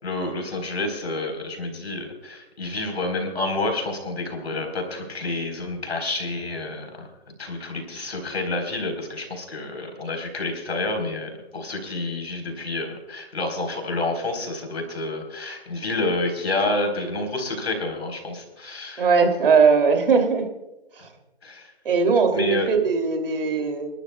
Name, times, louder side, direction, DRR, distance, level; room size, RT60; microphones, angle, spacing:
voice 1, 0.0-7.1 7.4-19.1 21.4-21.7 22.3-22.7, left 2 dB, 75° left, 4 dB, 4.1 m, -29 dB
voice 2, 19.0-20.5 21.0-21.1 21.8-23.9, right 5 dB, 55° right, 4 dB, 2.9 m, -19 dB
29.0 x 12.0 x 2.3 m, 1.0 s
hypercardioid pair, 155°, 32 cm